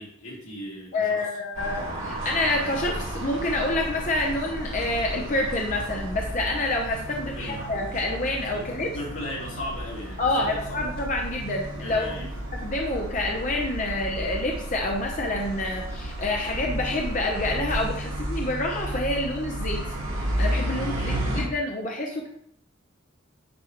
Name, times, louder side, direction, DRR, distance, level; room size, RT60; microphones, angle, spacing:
voice 1, 0.0-1.3 7.1-7.7 8.5-8.6 8.9-10.9 11.7-12.4 20.7-21.2, left 1 dB, 85° left, -4 dB, 2.4 m, -38 dB
voice 2, 0.9-8.9 10.2-19.8 20.1-22.3, left 2 dB, 40° left, 1 dB, 0.7 m, -28 dB
sound 1, 1.5-21.4, right 1 dB, 90° right, 2.5 m, -32 dB
9.4 x 4.7 x 3.0 m, 0.71 s
head